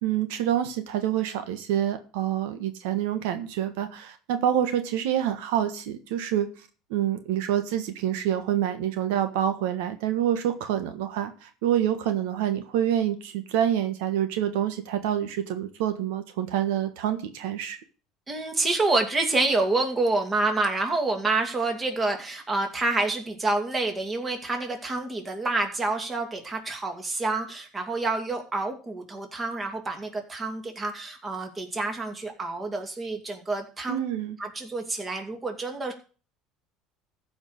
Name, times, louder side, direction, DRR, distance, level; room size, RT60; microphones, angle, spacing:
voice 1, 0.0-6.5 6.9-17.8 33.9-34.4, right 10 dB, 85° right, 8 dB, 1.4 m, -27 dB
voice 2, 18.3-34.0 34.4-35.9, right 2 dB, 20° right, 4 dB, 2.5 m, -28 dB
14.5 x 5.2 x 6.4 m, 0.37 s
cardioid pair, 135°, 0 cm